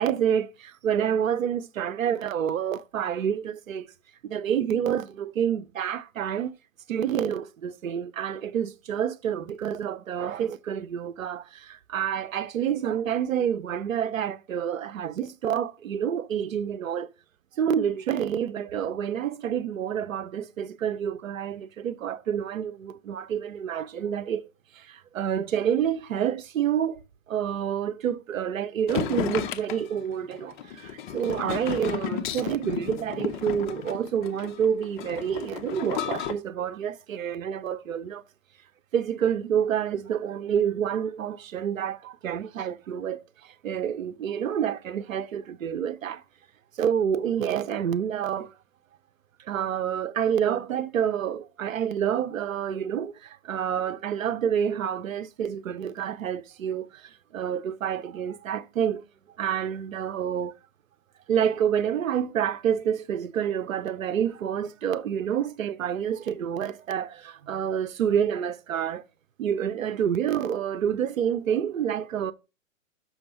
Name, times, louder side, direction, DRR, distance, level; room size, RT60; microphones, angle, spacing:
voice 1, 0.0-3.9 4.2-6.5 6.9-17.1 17.6-24.5 24.7-27.0 27.3-38.2 38.9-46.2 46.8-48.5 49.4-59.0 59.4-60.5 61.3-69.0 69.4-72.3, right 8 dB, 80° right, 0.8 m, -28 dB
sound 1, 28.9-36.3, left 10 dB, 40° left, 0.7 m, -33 dB
6.3 x 6.0 x 5.4 m
hypercardioid pair, 130°, 40 cm